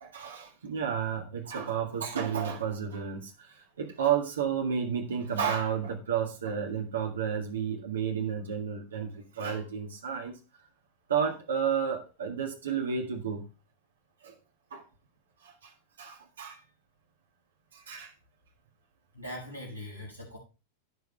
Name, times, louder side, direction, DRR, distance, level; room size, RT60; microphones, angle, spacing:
voice 1, 0.0-10.3 11.1-13.4 14.2-14.4 14.7-14.8 15.4-15.7 16.0-16.6 17.7-18.1, right 7 dB, 65° right, 3 dB, 1.8 m, -31 dB
voice 2, 19.1-20.4, left 1 dB, 85° right, -2 dB, 5.6 m, -41 dB
16.0 x 5.4 x 3.3 m, 0.30 s
figure-of-eight pair, 90°, 0 cm